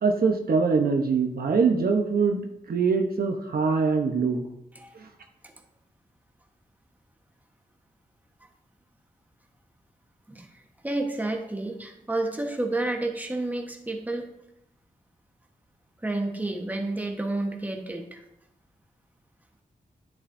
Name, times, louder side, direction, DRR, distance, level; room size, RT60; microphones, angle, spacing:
voice 1, 0.0-4.4, right 5 dB, 85° right, 4 dB, 0.9 m, -23 dB
voice 2, 10.8-14.3 16.0-18.2, right 2 dB, 10° right, 3 dB, 1.2 m, -30 dB
9.9 x 8.8 x 2.7 m, 0.82 s
wide cardioid pair, 90°, 15 cm